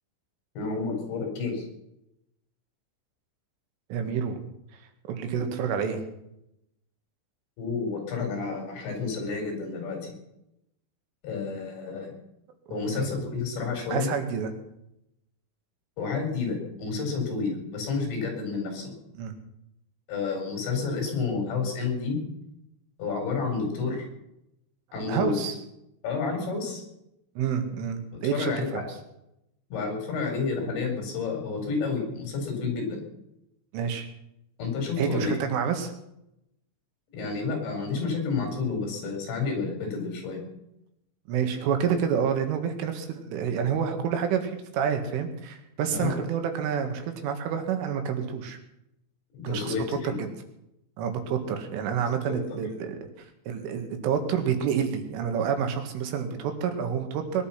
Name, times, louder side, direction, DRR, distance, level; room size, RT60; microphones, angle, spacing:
voice 1, 0.6-1.7 7.6-10.2 11.2-12.1 12.7-14.1 16.0-18.9 20.1-22.2 23.0-24.1 24.9-25.4 26.0-26.8 28.1-28.8 29.7-33.0 34.6-35.4 37.1-40.4 45.9-46.2 49.3-50.2 52.3-52.4, left 4 dB, 65° left, 3 dB, 6.7 m, -30 dB
voice 2, 3.9-4.4 5.0-6.0 12.7-13.1 13.9-14.6 19.2-19.4 25.1-25.6 27.4-28.8 33.7-34.1 35.0-35.9 41.3-48.6 49.4-50.0 51.0-53.1 53.5-57.5, right 7 dB, 80° right, 6 dB, 4.4 m, -28 dB
21.5 x 11.5 x 5.9 m, 0.83 s
omnidirectional pair, 5.6 m